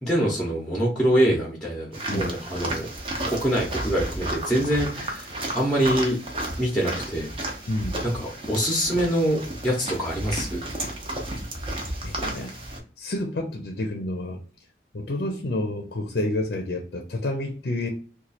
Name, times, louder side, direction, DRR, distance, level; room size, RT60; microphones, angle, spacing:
voice 1, 0.0-2.9 3.3-5.3 5.5-6.2 6.6-7.3 8.1-10.6, equal, 5° left, -2 dB, 0.7 m, -24 dB
sound 1, 1.9-12.8, right 1 dB, 30° right, 0.7 m, -32 dB
voice 2, 2.1-2.4 7.7-8.0 12.0-12.5 13.0-14.4 14.9-17.9, left 1 dB, 60° left, 3 dB, 0.5 m, -29 dB
3.0 x 2.3 x 4.1 m, 0.40 s
head